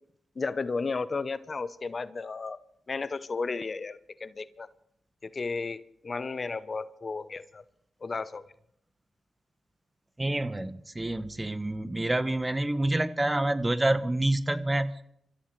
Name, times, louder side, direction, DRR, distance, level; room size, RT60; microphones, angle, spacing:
voice 1, 0.4-2.6 2.9-4.7 5.2-7.6 8.0-8.5, left 4 dB, 45° left, 16 dB, 0.6 m, -33 dB
voice 2, 10.2-15.0, right 1 dB, 20° right, 13 dB, 1.0 m, -28 dB
26.5 x 14.5 x 3.2 m, 0.73 s
supercardioid pair, 40°, 0 cm